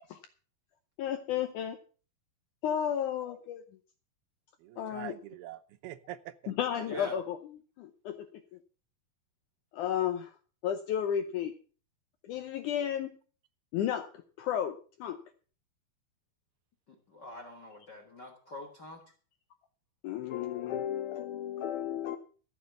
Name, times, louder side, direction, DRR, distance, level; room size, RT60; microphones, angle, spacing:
voice 1, 1.0-1.8 2.6-3.6 4.8-5.1 6.5-7.4 7.8-8.6 9.7-10.4 10.6-11.5 12.2-13.2 13.7-14.1 14.4-15.2 20.0-22.2, left 9 dB, 80° left, 8 dB, 1.8 m, -33 dB
voice 2, 4.6-7.2, right 13 dB, 90° right, 13 dB, 2.7 m, -45 dB
voice 3, 6.9-7.2 16.9-19.0, left 1 dB, 55° left, 3 dB, 1.2 m, -45 dB
13.5 x 7.0 x 6.7 m, 0.40 s
omnidirectional pair, 4.4 m